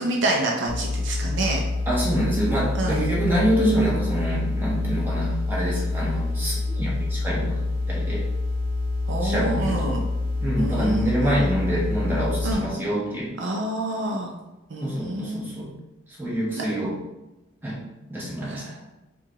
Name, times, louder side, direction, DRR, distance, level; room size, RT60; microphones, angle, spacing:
voice 1, 0.0-1.6 2.7-3.0 9.1-10.0 10.6-11.3 12.4-12.7 13.4-14.3 14.7-15.4 16.6-16.7 18.5-18.8, right 1 dB, 65° right, 0 dB, 0.6 m, -27 dB
sound 1, 0.7-12.5, left 2 dB, 45° right, 1.4 m, -27 dB
voice 2, 1.9-8.2 9.2-9.9 10.4-13.3 14.8-15.7 16.2-16.9 17.6-17.8 18.1-18.7, right 1 dB, 10° right, -7 dB, 1.2 m, -26 dB
4.7 x 2.5 x 2.9 m, 0.99 s
head